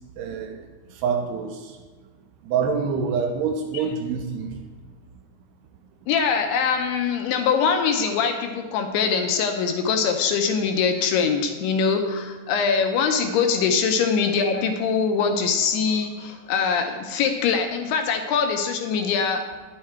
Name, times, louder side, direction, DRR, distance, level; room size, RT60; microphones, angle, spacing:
voice 1, 0.2-1.8 2.4-4.5, right 6 dB, 80° right, 3 dB, 2.5 m, -26 dB
voice 2, 6.1-19.5, left 6 dB, 80° left, 5 dB, 2.5 m, -23 dB
9.6 x 7.3 x 4.4 m, 1.4 s
omnidirectional pair, 5.1 m